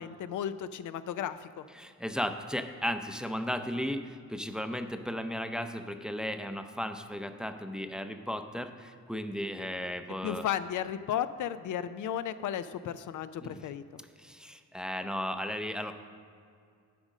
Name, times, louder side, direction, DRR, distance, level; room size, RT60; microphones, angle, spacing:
voice 1, 0.0-1.6 10.2-13.8, left 9 dB, 75° left, 12 dB, 0.5 m, -34 dB
voice 2, 1.7-10.5 13.4-13.6 14.2-15.9, equal, 5° right, 7 dB, 0.5 m, -35 dB
10.5 x 5.0 x 6.4 m, 2.3 s
cardioid pair, 80°, 30 cm